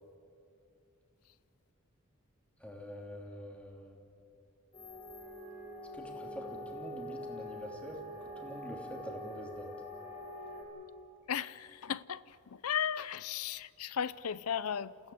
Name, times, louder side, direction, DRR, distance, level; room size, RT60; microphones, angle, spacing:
voice 1, 2.6-4.0 5.9-8.0 8.4-9.7, equal, 5° left, 2.9 m, -46 dB
sound 1, 4.7-10.6, equal, 35° left, 5.2 m, -44 dB
voice 2, 11.3-15.1, left 8 dB, 85° left, 0.6 m, -36 dB
28.0 x 16.0 x 8.5 m
head